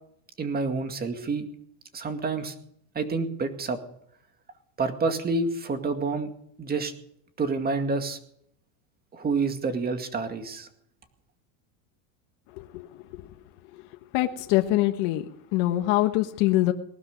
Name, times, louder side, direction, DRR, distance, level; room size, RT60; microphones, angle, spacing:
voice 1, 0.4-1.4 1.9-2.5 2.9-3.8 4.8-6.3 6.6-6.9 7.4-8.2 9.1-10.7, right 4 dB, 20° right, 7 dB, 2.2 m, -28 dB
voice 2, 12.6-13.2 14.1-15.2 15.5-16.7, left 16 dB, 60° left, 5 dB, 1.4 m, -24 dB
19.5 x 12.5 x 5.2 m, 0.70 s
supercardioid pair, 140°, 42 cm